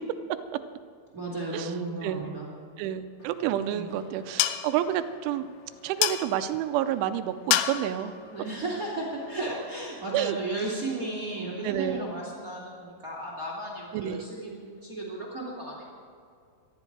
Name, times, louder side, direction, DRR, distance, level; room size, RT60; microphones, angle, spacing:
voice 1, 1.1-2.5 3.7-3.9 8.3-15.8, right 2 dB, 30° right, -3 dB, 1.6 m, -34 dB
voice 2, 2.8-5.5 5.8-8.1 10.1-10.4 11.6-12.0 13.9-14.3, right 11 dB, 80° right, 11 dB, 2.9 m, -29 dB
sound 1, 3.2-9.6, left 13 dB, 85° left, 3.3 m, -32 dB
19.5 x 13.0 x 4.7 m, 2.3 s
omnidirectional pair, 5.8 m